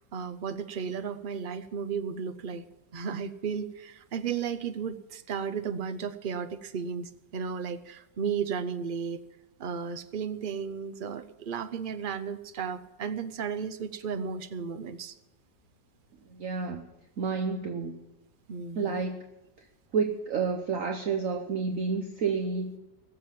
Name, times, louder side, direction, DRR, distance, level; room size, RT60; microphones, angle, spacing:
voice 1, 0.0-9.2 9.6-15.1 18.5-19.0, right 6 dB, 80° right, 10 dB, 0.4 m, -34 dB
voice 2, 16.3-16.9 17.2-18.0 18.7-19.2 19.6-19.7 19.9-22.7, right 5 dB, 55° right, 4 dB, 1.2 m, -30 dB
19.0 x 7.7 x 7.4 m, 0.99 s
omnidirectional pair, 1.9 m